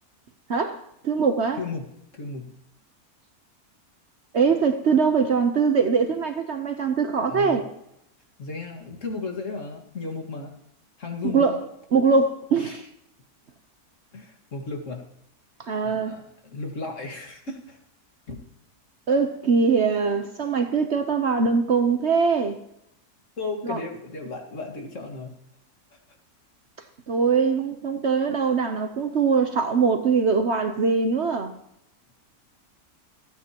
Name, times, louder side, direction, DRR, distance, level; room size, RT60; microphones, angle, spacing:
voice 1, 0.5-1.6 4.3-7.6 11.3-11.6 11.9-12.8 15.6-16.2 19.1-22.6 23.6-23.8 27.1-31.5, right 5 dB, 50° right, 1.0 m, -22 dB
voice 2, 1.5-2.5 7.3-7.6 8.4-10.5 11.0-11.5 12.6-12.8 14.1-15.0 15.8-17.8 18.3-18.4 23.4-25.3, left 3 dB, 55° left, 2.2 m, -34 dB
27.0 x 9.1 x 2.9 m
omnidirectional pair, 1.6 m